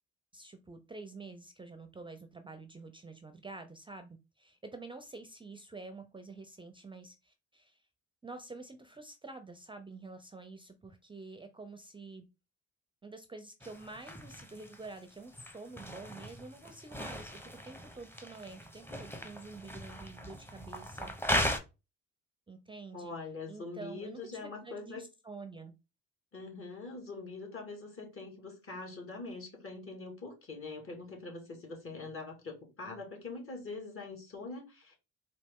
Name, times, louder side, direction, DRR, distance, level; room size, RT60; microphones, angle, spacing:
voice 1, 0.3-7.8 8.2-12.3 13.0-21.1 22.5-23.1 23.5-25.7, right 3 dB, 15° right, 0.5 m, -48 dB
sound 1, 13.6-21.6, equal, 5° left, 0.8 m, -38 dB
voice 2, 22.9-25.1 26.3-35.0, left 3 dB, 45° left, 2.0 m, -43 dB
4.1 x 2.8 x 3.5 m
cardioid pair, 90°, 30 cm